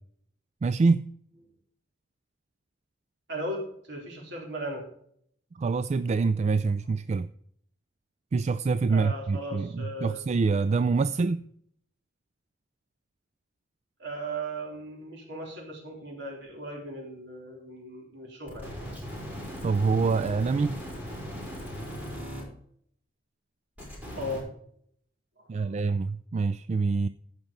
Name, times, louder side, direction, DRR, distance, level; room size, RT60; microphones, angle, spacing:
voice 1, 0.6-1.1 5.6-7.3 8.3-11.4 19.6-20.8 25.5-27.1, right 4 dB, 35° right, 13 dB, 0.3 m, -25 dB
voice 2, 3.3-4.8 8.9-10.2 14.0-18.7 24.2-24.5 25.4-25.7, right 1 dB, 65° right, 0 dB, 3.8 m, -37 dB
sound 1, 18.5-22.4 23.8-24.4, equal, 10° right, 5.4 m, -38 dB
15.0 x 6.0 x 5.3 m, 0.66 s
head